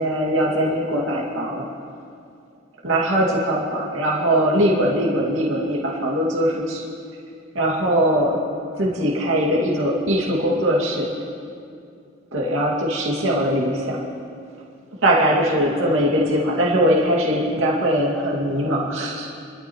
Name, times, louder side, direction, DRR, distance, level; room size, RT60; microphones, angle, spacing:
voice 1, 0.0-1.7 2.8-6.8 7.5-8.4 8.8-11.1 12.3-14.0 15.0-19.3, equal, 80° right, -3 dB, 2.3 m, -21 dB
29.5 x 12.5 x 3.1 m, 2.5 s
head